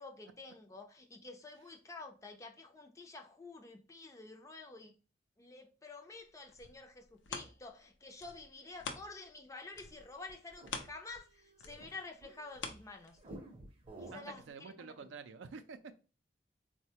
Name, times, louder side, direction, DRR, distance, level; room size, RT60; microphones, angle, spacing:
voice 1, 0.0-5.0 5.4-13.2 14.0-15.1, left 3 dB, 15° left, 0.4 m, -50 dB
sound 1, 6.3-9.4 9.7-13.5 14.0-14.1, left 4 dB, 75° left, 0.5 m, -47 dB
sound 2, 9.7-12.7 13.2-14.5, right 1 dB, 30° right, 0.6 m, -53 dB
voice 2, 14.1-16.0, right 5 dB, 80° right, 0.4 m, -49 dB
4.0 x 2.2 x 2.7 m
head